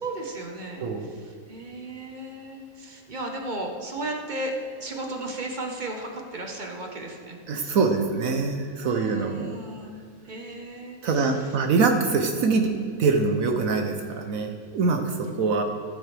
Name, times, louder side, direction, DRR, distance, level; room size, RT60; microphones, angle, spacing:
voice 1, 0.0-7.8 8.8-9.9 10.2-11.5, right 2 dB, 35° right, 2 dB, 1.0 m, -35 dB
voice 2, 0.8-1.1 7.5-9.4 11.0-12.7 13.0-15.6, right 4 dB, 70° right, 4 dB, 1.1 m, -24 dB
15.0 x 7.4 x 3.3 m, 2.3 s
omnidirectional pair, 1.6 m